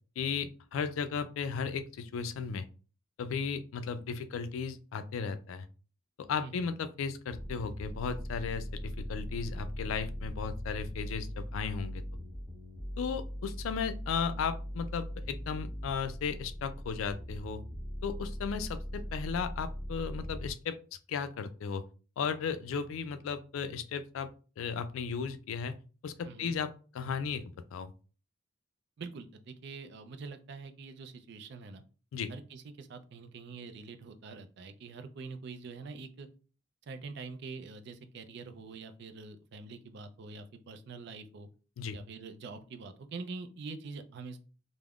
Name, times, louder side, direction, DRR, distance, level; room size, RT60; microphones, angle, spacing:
voice 1, 0.2-2.7 3.2-5.7 6.2-12.0 13.0-17.6 18.0-20.8 21.1-21.8 22.2-24.3 24.6-25.8 26.0-27.4 27.7-27.9 32.1-32.3 41.8-42.0, left 6 dB, 75° left, 12 dB, 0.3 m, -35 dB
sound 1, 7.3-20.5, equal, 15° right, 1.2 m, -40 dB
voice 2, 26.2-26.6 29.0-31.8 32.3-36.3 36.8-41.5 41.9-44.4, right 4 dB, 55° right, 8 dB, 0.4 m, -45 dB
3.4 x 2.1 x 2.3 m, 0.36 s
head